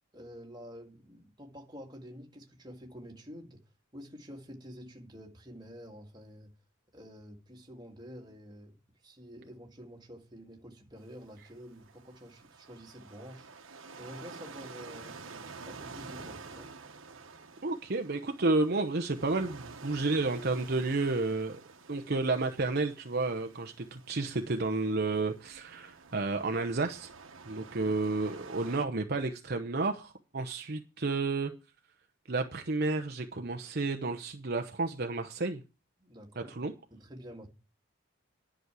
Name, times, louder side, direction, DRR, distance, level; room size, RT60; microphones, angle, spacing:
voice 1, 0.1-3.6 3.9-6.5 6.9-13.5 13.9-15.2 15.6-16.7 27.5-27.9 36.0-36.5 36.9-37.5, equal, 20° right, 2.0 m, -49 dB
sound 1, 11.0-28.8, right 4 dB, 70° right, 1.3 m, -50 dB
voice 2, 17.6-21.6 21.9-27.1 27.5-31.5 32.3-35.6 36.4-36.7, right 3 dB, 50° right, 0.9 m, -31 dB
11.0 x 6.3 x 8.3 m
head